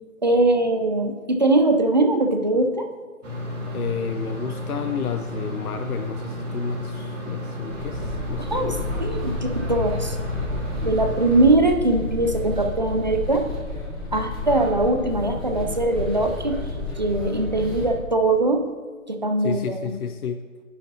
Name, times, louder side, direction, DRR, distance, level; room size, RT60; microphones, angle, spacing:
voice 1, 0.2-2.9 8.4-10.2 10.8-13.5 14.1-16.6 16.9-18.6 19.1-19.8, right 2 dB, 35° right, 5 dB, 0.4 m, -21 dB
sound 1, 3.2-11.4, left 1 dB, 55° right, 2.0 m, -33 dB
voice 2, 3.7-8.8 19.4-20.4, left 6 dB, 85° left, 9 dB, 0.6 m, -31 dB
sound 2, 7.7-17.9, left 2 dB, ahead, 1.1 m, -31 dB
9.9 x 8.0 x 2.7 m, 1.5 s
figure-of-eight pair, 155°, 43 cm